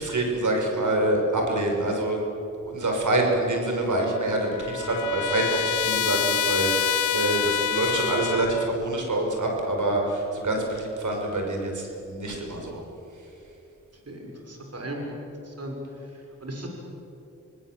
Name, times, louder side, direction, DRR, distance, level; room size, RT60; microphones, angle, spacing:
voice 1, 0.0-2.2 2.6-12.8, right 2 dB, 70° right, 1 dB, 5.6 m, -26 dB
Trumpet, 4.0-8.7, left 9 dB, 75° left, 0.7 m, -27 dB
voice 2, 14.1-15.1 15.4-15.8 16.4-16.7, right 1 dB, 50° right, 1 dB, 5.7 m, -36 dB
27.0 x 18.5 x 7.7 m, 3.0 s
cardioid pair, 50°, 31 cm